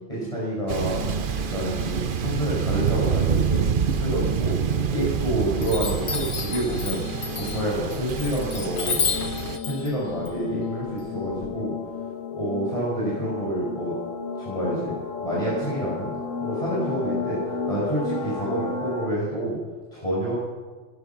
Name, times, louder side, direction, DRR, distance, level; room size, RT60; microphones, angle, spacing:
voice 1, 0.1-1.0 1.5-3.7 4.0-4.6 4.9-7.0 7.3-9.0 9.6-11.7 12.4-13.9 14.4-14.9 15.2-16.1 16.4-17.4 17.7-19.6 19.9-20.3, right 1 dB, 15° left, -6 dB, 6.4 m, -28 dB
Thunder, 0.7-9.6, right 7 dB, 85° right, 0.4 m, -27 dB
sound 1, 0.8-19.1, left 5 dB, 40° left, 2.1 m, -34 dB
Chime, 4.7-5.2 5.6-11.5, left 6 dB, 65° left, 2.2 m, -32 dB
21.0 x 20.5 x 6.0 m, 1.4 s
omnidirectional pair, 2.1 m